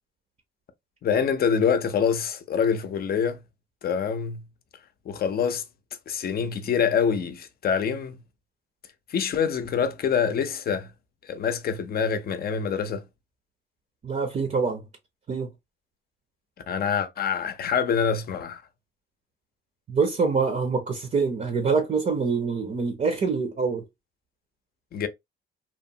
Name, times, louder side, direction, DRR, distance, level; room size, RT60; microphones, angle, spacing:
voice 1, 1.0-3.4 3.8-4.4 5.1-5.6 6.1-8.2 9.1-10.9 11.2-13.0 16.7-18.6 24.9-25.1, left 7 dB, 50° left, 0.5 m, -25 dB
voice 2, 14.0-14.8 15.3-15.5 19.9-23.8, right 5 dB, 35° right, 0.6 m, -25 dB
2.9 x 2.0 x 2.6 m
cardioid pair, 90°, 20 cm